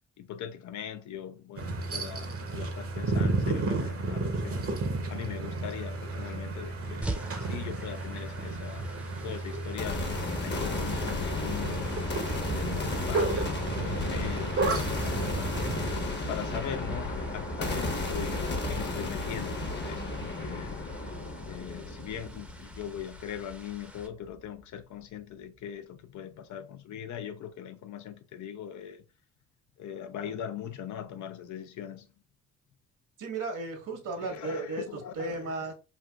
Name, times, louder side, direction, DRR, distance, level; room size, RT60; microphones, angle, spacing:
voice 1, 0.2-4.8 5.1-7.1 7.4-11.9 12.5-15.7 16.3-20.8 21.4-29.0 29.8-32.1 34.2-35.7, left 9 dB, 65° left, 0.5 m, -40 dB
sound 1, 1.6-15.9, right 3 dB, 45° right, 0.9 m, -33 dB
sound 2, 7.0-24.1, right 1 dB, 5° right, 0.7 m, -47 dB
sound 3, 9.8-23.7, left 2 dB, 35° left, 0.9 m, -33 dB
voice 2, 33.2-35.7, right 3 dB, 70° right, 1.4 m, -35 dB
3.3 x 2.5 x 2.4 m
supercardioid pair, 65°, 32 cm